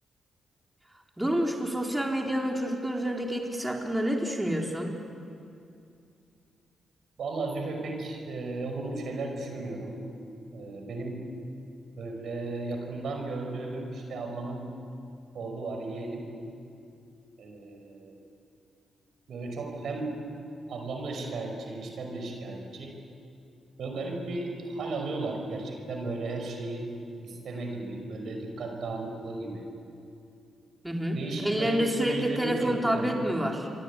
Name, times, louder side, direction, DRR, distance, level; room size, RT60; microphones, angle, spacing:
voice 1, 1.2-5.0 30.8-33.7, equal, 10° right, 1 dB, 4.1 m, -28 dB
voice 2, 7.2-10.0 10.5-11.2 12.0-14.7 15.3-16.3 17.4-18.2 19.3-20.1 20.7-22.9 23.8-26.9 27.2-29.7 31.1-33.2, right 2 dB, 65° right, 3 dB, 5.4 m, -35 dB
26.5 x 23.5 x 8.5 m, 2.5 s
hypercardioid pair, 40°, 0 cm